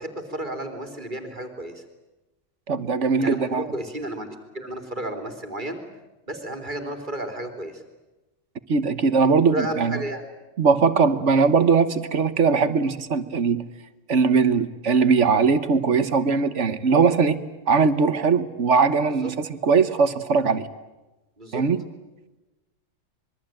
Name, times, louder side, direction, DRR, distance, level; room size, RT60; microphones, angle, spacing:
voice 1, 0.0-1.8 3.2-5.8 6.3-7.8 9.5-10.2 19.2-19.3 21.4-21.6, right 1 dB, 40° right, 6 dB, 3.4 m, -32 dB
voice 2, 2.7-3.7 8.7-10.0 10.6-13.6 14.1-17.4 17.7-20.7 21.5-21.8, right 5 dB, 75° right, 12 dB, 1.5 m, -20 dB
26.5 x 22.5 x 9.0 m, 1.1 s
omnidirectional pair, 1.3 m